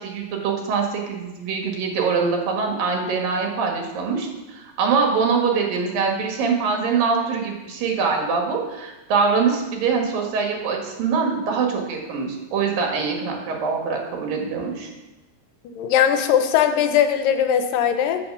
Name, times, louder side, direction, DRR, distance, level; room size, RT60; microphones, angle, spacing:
voice 1, 0.0-14.9, right 5 dB, 80° right, 1 dB, 3.4 m, -23 dB
voice 2, 15.7-18.2, left 9 dB, 80° left, 8 dB, 2.3 m, -19 dB
8.4 x 7.6 x 6.7 m, 1.1 s
omnidirectional pair, 4.0 m